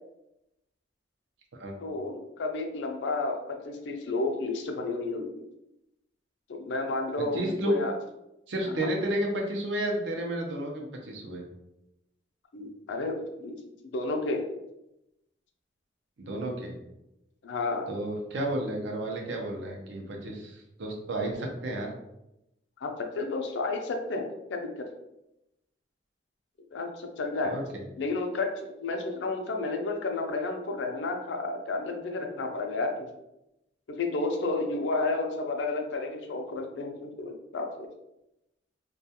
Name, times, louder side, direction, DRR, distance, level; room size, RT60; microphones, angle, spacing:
voice 1, 1.8-5.3 6.5-7.9 8.8-8.9 12.5-13.6 13.9-14.4 17.4-17.9 22.8-24.7 26.7-27.6 28.0-32.9 34.0-37.9, left 3 dB, 80° left, 3 dB, 0.4 m, -31 dB
voice 2, 7.2-7.8 8.5-11.4 16.2-16.7 17.9-21.9 27.4-27.6, right 1 dB, 80° right, 1 dB, 0.6 m, -31 dB
2.3 x 2.2 x 2.7 m, 0.88 s
head